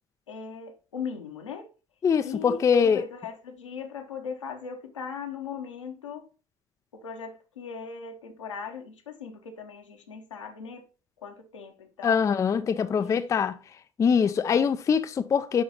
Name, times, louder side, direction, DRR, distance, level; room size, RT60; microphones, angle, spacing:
voice 1, 0.3-1.7 2.2-6.3 6.9-10.9 11.2-12.3 12.5-13.6, left 6 dB, 75° left, 1.0 m, -39 dB
voice 2, 2.0-3.0 12.0-13.6 14.0-15.6, left 6 dB, 20° left, 0.4 m, -23 dB
11.0 x 3.9 x 3.0 m
figure-of-eight pair, 60°, 16 cm